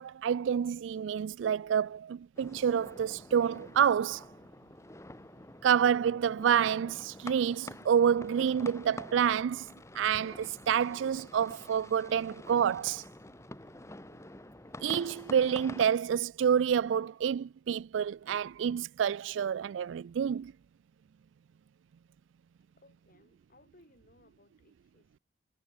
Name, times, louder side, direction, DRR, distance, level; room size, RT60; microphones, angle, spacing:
voice 1, 0.0-4.3 5.6-9.7 9.9-13.0 14.8-20.5, right 8 dB, 80° right, 0.3 m, -28 dB
sound 1, 2.4-15.8, left 1 dB, 15° left, 1.4 m, -48 dB
voice 2, 22.8-25.2, left 1 dB, 50° left, 6.6 m, -63 dB
head